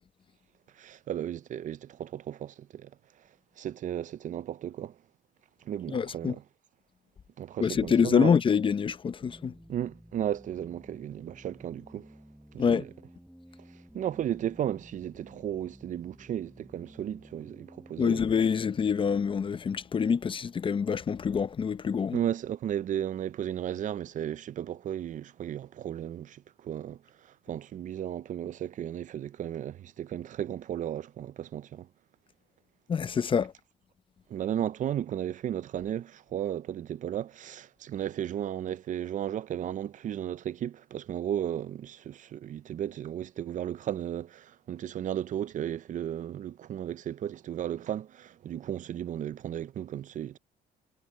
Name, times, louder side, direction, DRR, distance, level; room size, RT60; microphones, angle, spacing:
voice 1, 0.8-2.9 3.6-5.0 5.6-6.4 7.4-8.3 9.7-12.1 12.5-12.9 13.9-18.2 22.1-31.9 34.3-50.4, right 10 dB, 50° right, 0.6 m, -34 dB
voice 2, 5.9-6.3 7.6-9.5 12.6-12.8 18.0-22.2 32.9-33.5, left 6 dB, 30° left, 0.6 m, -26 dB
sound 1, 9.2-19.2, equal, ahead, 7.2 m, -53 dB
cardioid pair, 110°, 17 cm